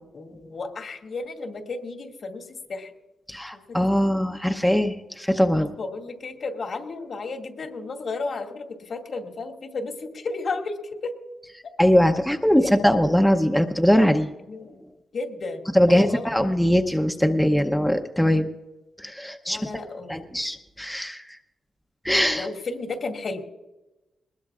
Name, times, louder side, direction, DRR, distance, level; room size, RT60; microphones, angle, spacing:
voice 1, 0.1-2.9 3.7-4.0 5.6-11.1 12.6-12.8 14.5-14.8 15.1-16.5 19.5-20.2 22.3-23.4, left 3 dB, 60° left, 2 dB, 2.1 m, -33 dB
voice 2, 3.3-5.7 11.8-14.3 15.7-18.6 19.0-19.7 20.1-21.3 22.0-22.5, equal, 5° left, 5 dB, 0.8 m, -21 dB
20.5 x 20.5 x 2.5 m, 1.0 s
cardioid pair, 95°, 0 cm